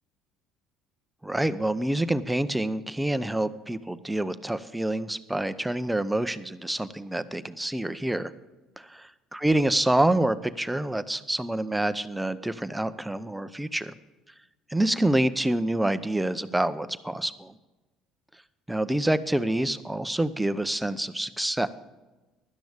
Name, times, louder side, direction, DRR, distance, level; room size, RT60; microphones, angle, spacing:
voice 1, 1.2-8.3 8.8-8.9 9.3-13.9 14.7-17.5 18.7-21.7, right 1 dB, 5° right, 12 dB, 0.7 m, -27 dB
16.5 x 12.0 x 3.5 m, 1.1 s
supercardioid pair, 80°, 0 cm